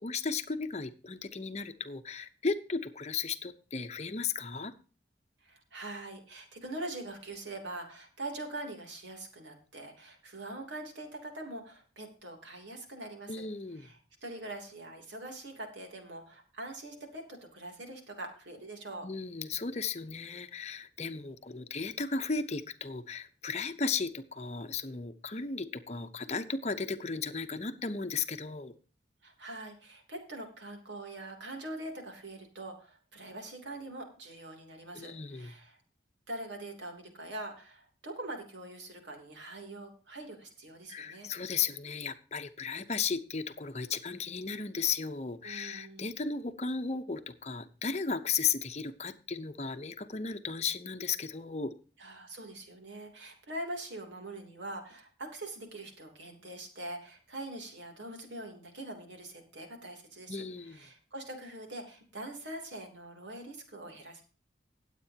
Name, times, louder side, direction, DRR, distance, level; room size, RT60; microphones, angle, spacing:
voice 1, 0.0-4.7 13.3-13.9 19.0-28.7 34.9-35.5 40.9-51.7 60.3-60.8, left 5 dB, 35° left, 9 dB, 0.8 m, -35 dB
voice 2, 5.4-13.5 13.8-19.1 29.2-35.8 36.3-41.3 45.4-46.1 52.0-64.2, right 1 dB, 80° right, 3 dB, 3.1 m, -43 dB
18.5 x 8.2 x 2.8 m, 0.37 s
head